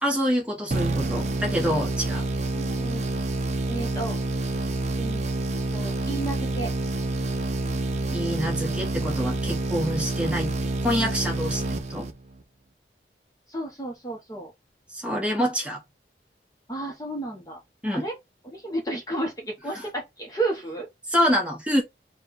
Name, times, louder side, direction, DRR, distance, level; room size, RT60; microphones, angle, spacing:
voice 1, 0.0-2.2 8.1-10.5 10.8-11.6 11.9-12.1 14.9-15.8 17.8-18.1 19.7-19.9 21.1-21.8, equal, 5° right, 1.1 m, -26 dB
sound 1, 0.7-12.4, right 2 dB, 40° right, 0.6 m, -28 dB
voice 2, 2.5-3.1 3.7-4.2 5.0-5.2 5.7-6.7 8.6-8.7 13.5-14.5 16.7-17.6 17.9-18.1 18.5-20.9, right 2 dB, 20° left, 0.9 m, -32 dB
4.2 x 2.3 x 3.9 m
head